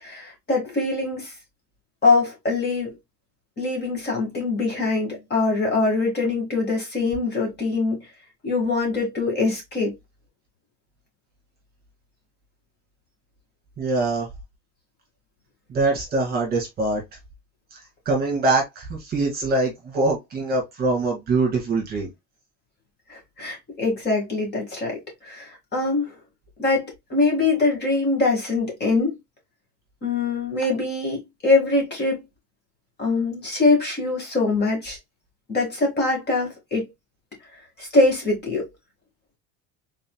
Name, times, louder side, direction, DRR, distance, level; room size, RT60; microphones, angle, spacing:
voice 1, 0.0-1.3 2.0-3.0 3.6-8.0 8.4-9.9 23.1-25.0 25.2-26.1 26.6-29.1 30.0-32.2 33.0-35.0 35.5-36.9 37.8-38.7, left 3 dB, 30° left, 2.0 m, -23 dB
voice 2, 13.8-14.3 15.7-17.0 17.7-17.8 18.1-22.1, right 2 dB, 25° right, 2.0 m, -23 dB
4.1 x 4.1 x 2.3 m
cardioid pair, 170°, 35 cm